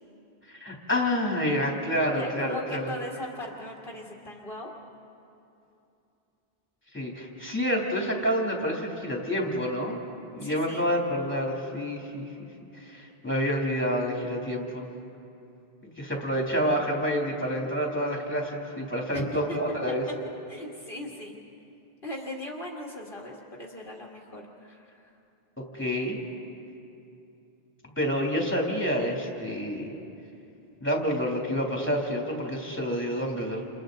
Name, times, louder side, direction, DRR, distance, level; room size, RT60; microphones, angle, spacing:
voice 1, 0.5-2.9 6.9-10.0 10.3-12.5 12.7-14.8 16.0-20.0 25.7-26.2 28.0-29.9 30.8-33.6, equal, 10° left, -2 dB, 3.1 m, -28 dB
voice 2, 2.1-4.7 10.4-10.8 19.1-19.6 20.5-21.4 22.0-25.1, left 1 dB, 55° left, -2 dB, 2.0 m, -39 dB
29.0 x 29.0 x 4.0 m, 2.7 s
omnidirectional pair, 1.1 m